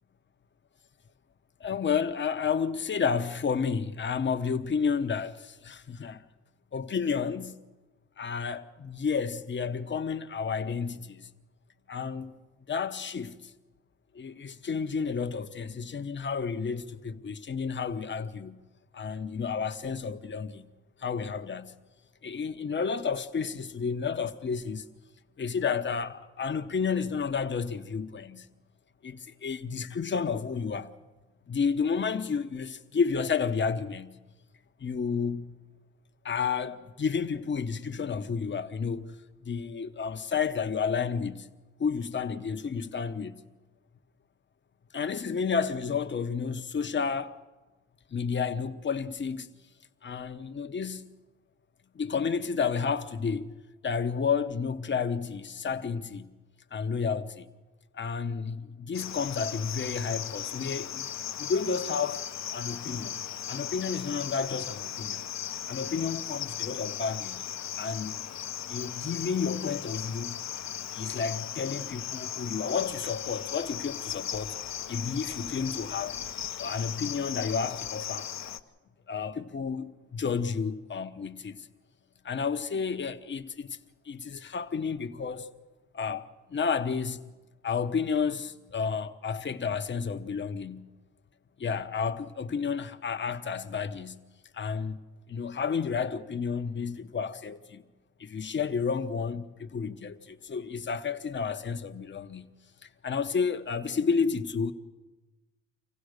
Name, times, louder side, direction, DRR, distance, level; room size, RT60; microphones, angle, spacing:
voice 1, 1.6-6.2 6.7-7.6 8.2-11.3 11.9-12.4 12.7-13.5 14.1-18.6 18.9-20.7 21.0-21.7 22.2-24.8 25.4-28.5 29.0-30.9 31.5-34.2 34.8-35.6 36.2-41.5 41.8-43.4 44.9-47.4 48.1-49.5 50.0-51.0 51.9-53.5 53.8-56.3 56.7-57.5 57.9-62.2 62.5-63.2 63.5-65.2 65.7-67.4 67.8-68.2 68.7-70.4 70.9-74.5 74.9-76.1 76.6-78.3 79.1-81.7 82.2-83.8 84.0-85.5 85.9-87.3 87.6-90.9 91.6-94.2 94.5-95.0 95.3-97.8 98.2-102.5 102.8-104.7, left 5 dB, 40° left, 1.1 m, -31 dB
Cricket, 58.9-78.6, left 10 dB, 65° left, 1.0 m, -37 dB
26.0 x 16.0 x 6.6 m
cardioid pair, 90°, 30 cm